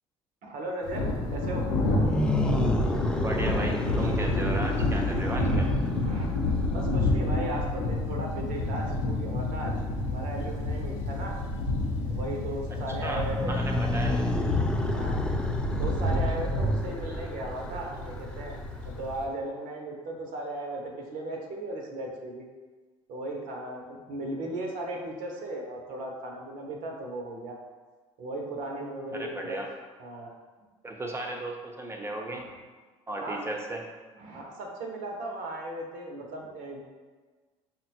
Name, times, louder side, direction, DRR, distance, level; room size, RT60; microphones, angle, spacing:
voice 1, 0.4-1.7 6.0-6.3 6.7-9.7 10.0-11.4 12.1-13.9 14.9-15.3 15.8-18.6 19.0-22.4 23.1-27.6 28.2-29.6 30.0-30.3 32.3-32.5 33.2-33.4 34.2-36.9, right 1 dB, 65° right, 0 dB, 0.7 m, -36 dB
Thunder, 0.8-19.2, left 2 dB, 75° left, 0.7 m, -29 dB
sound 1, 1.9-7.1 13.3-19.0, left 1 dB, 5° left, 0.3 m, -33 dB
voice 2, 3.2-5.7 12.9-14.5 29.1-29.7 30.8-32.5 33.1-33.8, right 1 dB, 15° right, 1 dB, 0.7 m, -35 dB
5.4 x 2.2 x 2.8 m, 1.4 s
hypercardioid pair, 65°, 15 cm